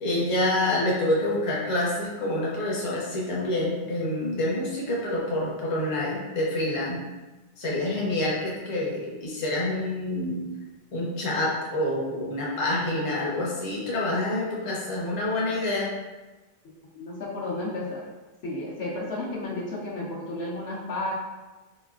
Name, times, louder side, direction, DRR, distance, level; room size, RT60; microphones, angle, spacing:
voice 1, 0.0-7.0 7.6-10.5 10.9-15.9, left 1 dB, 30° left, -5 dB, 0.7 m, -27 dB
voice 2, 16.9-18.1 18.4-21.1, left 2 dB, 65° left, -4 dB, 1.0 m, -32 dB
4.1 x 3.1 x 2.4 m, 1.1 s
omnidirectional pair, 1.2 m